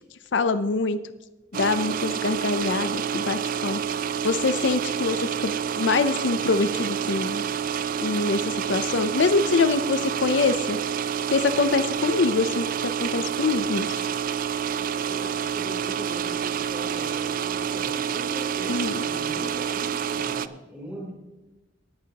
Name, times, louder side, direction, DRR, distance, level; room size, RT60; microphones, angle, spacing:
voice 1, 0.3-1.0 1.6-3.8 4.2-7.5 8.0-10.8 11.3-12.7 13.0-13.9 18.7-19.0, left 3 dB, 65° left, 12 dB, 0.5 m, -24 dB
sound 1, 1.5-20.5, right 8 dB, 45° right, 0.3 m, -28 dB
voice 2, 14.7-21.1, equal, 10° right, -4 dB, 3.2 m, -40 dB
19.5 x 9.0 x 2.9 m, 1.1 s
head